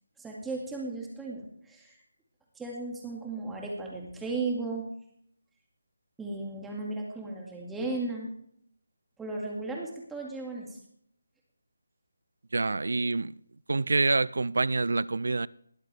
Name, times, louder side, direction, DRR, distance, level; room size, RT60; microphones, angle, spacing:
voice 1, 0.2-2.0 2.6-4.9 6.2-8.3 9.2-10.8, right 3 dB, 5° right, 2.1 m, -35 dB
voice 2, 12.5-13.4 13.7-15.5, right 3 dB, 70° right, 0.4 m, -26 dB
20.0 x 8.3 x 3.4 m
figure-of-eight pair, 160°, 0 cm